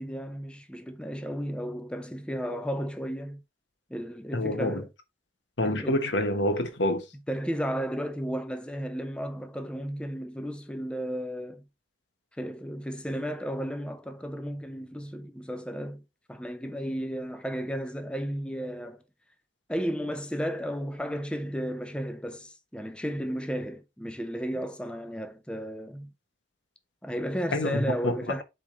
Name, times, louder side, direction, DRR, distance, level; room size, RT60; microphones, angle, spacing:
voice 1, 0.0-3.4 3.9-4.9 5.6-6.0 7.3-11.6 12.4-16.0 16.3-19.0 19.7-26.1 27.0-28.4, equal, 5° left, 0.6 m, -33 dB
voice 2, 4.3-4.8 5.6-7.1 27.5-28.2, left 1 dB, 90° left, 1.2 m, -27 dB
7.9 x 3.5 x 3.8 m
head